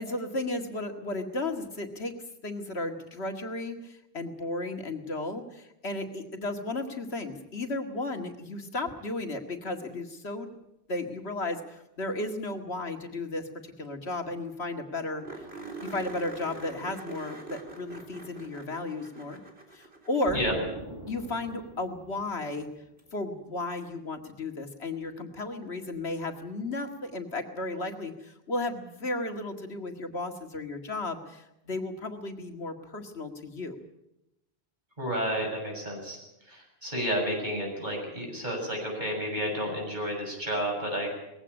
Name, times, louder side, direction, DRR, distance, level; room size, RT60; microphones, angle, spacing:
voice 1, 0.0-2.1 2.4-10.5 10.9-15.2 15.8-19.4 19.7-20.5 21.1-22.7 23.1-33.8, left 2 dB, 85° left, 5 dB, 2.3 m, -34 dB
sound 1, 13.8-13.9 14.1-14.2 14.5-14.6 15.2-20.7 23.0-23.1 25.9-26.0, right 3 dB, 75° right, 3.9 m, -44 dB
Explosion, 20.3-22.9, right 1 dB, 25° right, 3.2 m, -43 dB
voice 2, 35.0-36.2 36.5-41.1, equal, 45° right, 0 dB, 7.8 m, -31 dB
20.5 x 16.0 x 9.8 m, 0.88 s
omnidirectional pair, 1.1 m